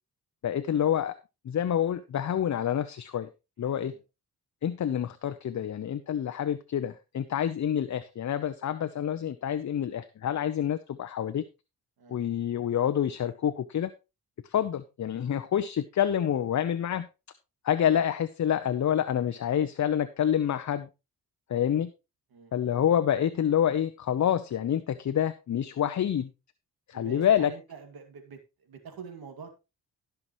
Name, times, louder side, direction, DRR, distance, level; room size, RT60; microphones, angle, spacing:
voice 1, 0.4-1.2 1.4-3.3 3.6-3.9 4.6-11.4 12.1-13.9 14.5-17.1 17.6-20.9 21.5-21.9 22.5-26.3 26.9-27.5, left 9 dB, 50° left, 11 dB, 0.7 m, -27 dB
voice 2, 3.6-4.0 12.0-12.3 17.8-18.0 22.3-22.7 26.9-29.5, right 5 dB, 75° right, 5 dB, 2.3 m, -46 dB
17.0 x 5.8 x 3.1 m, 0.27 s
cardioid pair, 75°, 37 cm